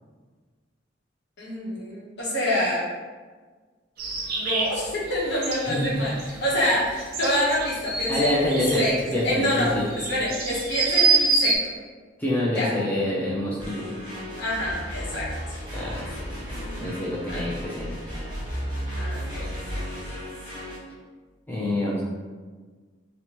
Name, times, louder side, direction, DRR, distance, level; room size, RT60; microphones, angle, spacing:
voice 1, 1.4-2.9 4.3-8.9 9.2-9.7 10.1-11.7 12.6-12.7 14.4-15.3 16.7-16.8 17.3-17.4 19.0-20.2, left 1 dB, 60° left, -6 dB, 0.9 m, -27 dB
sound 1, 4.0-11.6, right 4 dB, 50° right, 0.5 m, -26 dB
voice 2, 5.7-6.0 8.1-9.9 12.2-14.1 15.7-16.1 16.4-16.5 16.8-18.0 21.5-22.0, left 1 dB, 10° left, -6 dB, 0.3 m, -26 dB
sound 2, 13.6-20.8, equal, 25° right, 1.3 m, -34 dB
2.9 x 2.1 x 2.8 m, 1.4 s
head